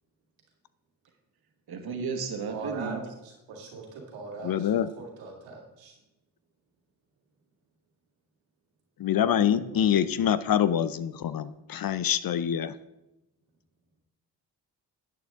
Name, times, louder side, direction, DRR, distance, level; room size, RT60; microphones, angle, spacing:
voice 1, 1.7-3.0 9.4-10.0, right 5 dB, 55° right, 4 dB, 1.8 m, -34 dB
voice 2, 2.5-5.9, right 3 dB, 90° right, 0 dB, 2.1 m, -41 dB
voice 3, 4.4-4.9 9.0-12.7, left 9 dB, 50° left, 15 dB, 0.6 m, -25 dB
10.5 x 8.5 x 3.5 m, 0.92 s
supercardioid pair, 55°, 44 cm